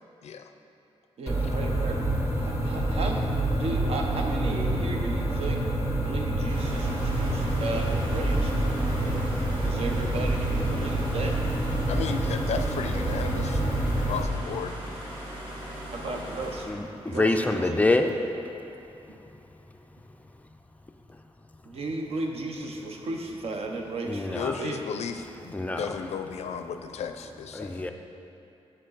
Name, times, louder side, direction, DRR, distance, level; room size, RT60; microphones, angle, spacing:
voice 1, 1.2-5.6 6.0-9.3 9.6-11.4 15.9-16.7 17.0-18.0 19.1-19.2 21.6-24.8, right 2 dB, 65° right, 2 dB, 0.8 m, -35 dB
sound 1, 1.3-14.2, right 1 dB, 25° right, 1.0 m, -27 dB
sound 2, 6.5-16.7, equal, 45° right, 1.6 m, -39 dB
voice 2, 11.9-13.6 14.1-14.8 24.3-27.8, left 7 dB, 85° left, 7 dB, 0.4 m, -34 dB
voice 3, 16.7-18.1 24.1-24.6 25.5-26.0 27.5-27.9, left 2 dB, 15° left, 5 dB, 0.3 m, -26 dB
7.6 x 6.6 x 3.9 m, 2.9 s
wide cardioid pair, 155°, 11 cm